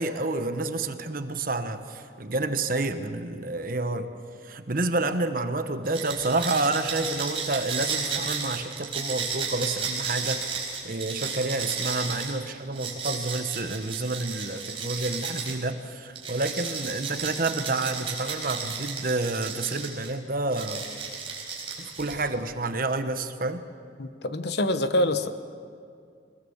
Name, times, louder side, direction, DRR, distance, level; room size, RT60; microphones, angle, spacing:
voice 1, 0.0-4.1 4.4-10.4 10.8-20.8 21.8-23.6, right 2 dB, 50° right, 8 dB, 1.2 m, -29 dB
sound 1, 5.9-15.6 16.2-20.1 20.5-22.3, right 5 dB, 30° right, 4.5 m, -33 dB
voice 2, 24.0-25.3, left 1 dB, 60° left, 10 dB, 1.0 m, -25 dB
23.5 x 20.5 x 7.2 m, 2.3 s
head